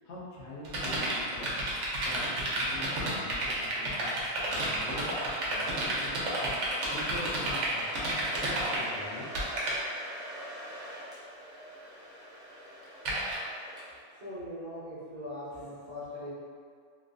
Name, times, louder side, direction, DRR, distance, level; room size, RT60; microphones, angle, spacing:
voice 1, 0.0-1.6 2.0-4.1 4.5-6.5 6.9-9.3, left 2 dB, 70° left, -5 dB, 0.8 m, -44 dB
sound 1, 0.6-8.8 9.1-9.8 13.0-13.3, right 2 dB, 70° right, 1.0 m, -31 dB
Domestic sounds home sounds, 7.5-14.2, equal, 5° right, 0.3 m, -44 dB
voice 2, 14.2-16.3, left 1 dB, 40° right, -11 dB, 0.7 m, -40 dB
3.0 x 2.3 x 2.5 m, 2.1 s
omnidirectional pair, 1.3 m